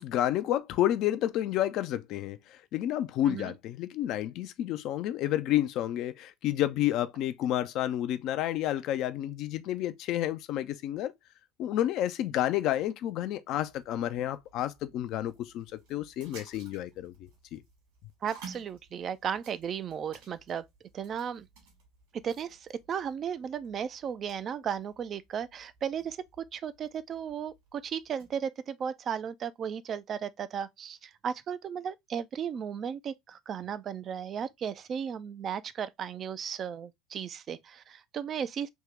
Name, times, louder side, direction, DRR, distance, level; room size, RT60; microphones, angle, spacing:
voice 1, 0.0-11.1 11.6-17.6, left 12 dB, 50° left, 0.4 m, -30 dB
sound 1, 13.6-28.4, right 5 dB, 60° right, 1.7 m, -55 dB
voice 2, 18.2-20.6 20.9-21.5 22.2-38.7, right 8 dB, 35° right, 0.3 m, -35 dB
3.5 x 2.8 x 3.1 m
figure-of-eight pair, 65°, 0 cm